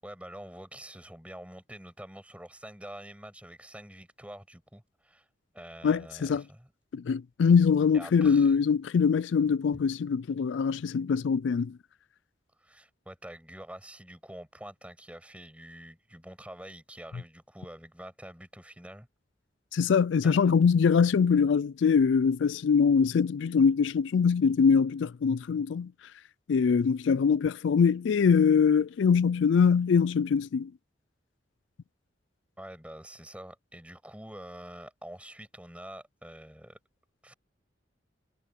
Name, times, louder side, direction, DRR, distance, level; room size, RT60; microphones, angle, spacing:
voice 1, 0.0-5.3 5.5-6.7 7.9-8.6 12.6-19.1 20.2-20.4 32.6-36.8 37.2-37.3, right 1 dB, 5° right, 6.7 m, -46 dB
voice 2, 5.8-6.4 6.9-11.8 19.7-25.9 26.5-30.7, left 6 dB, 75° left, 0.4 m, -23 dB
head